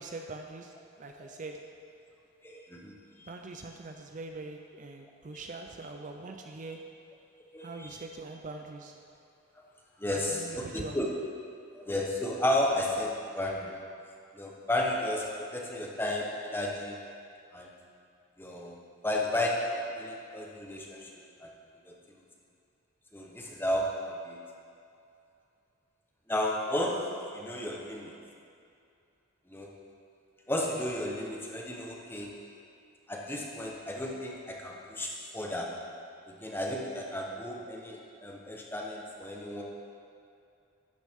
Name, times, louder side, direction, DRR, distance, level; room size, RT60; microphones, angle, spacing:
voice 1, 0.0-1.6 3.3-6.8 7.6-8.9 10.1-11.0, right 3 dB, 40° right, 3 dB, 0.5 m, -43 dB
voice 2, 2.4-3.3 7.5-8.0 10.0-11.1 11.7-13.8 14.3-17.0 17.5-17.7 18.4-21.1 21.4-21.5 21.9-22.0 23.1-24.4 26.3-28.1 29.5-29.8 30.5-32.3 33.1-35.9 36.3-39.6, left 1 dB, 10° left, -1 dB, 1.0 m, -33 dB
12.0 x 9.4 x 3.6 m, 2.5 s
head